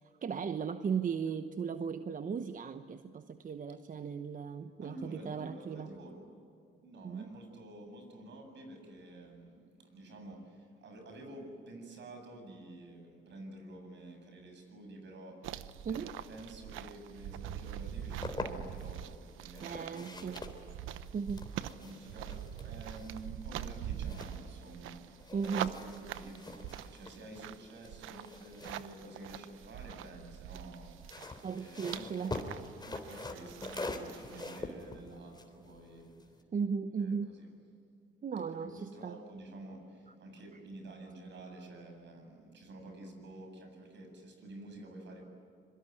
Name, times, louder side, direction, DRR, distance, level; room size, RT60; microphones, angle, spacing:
voice 1, 0.0-5.9 7.0-7.3 15.8-16.1 19.6-20.4 21.1-21.5 25.3-25.8 31.4-32.4 36.5-37.3 38.2-39.2, right 6 dB, 40° right, 10 dB, 1.0 m, -36 dB
voice 2, 4.8-6.2 6.8-20.6 21.5-36.2 37.0-37.5 38.5-45.2, right 2 dB, 65° right, 4 dB, 8.0 m, -50 dB
sound 1, 15.4-31.5 31.7-34.6, right 10 dB, 90° right, 0.9 m, -44 dB
sound 2, 17.8-18.9 19.5-24.9 25.2-29.8 30.8-36.4, left 2 dB, 20° left, 3.5 m, -45 dB
26.0 x 23.0 x 9.6 m, 2.6 s
cardioid pair, 90°, 20 cm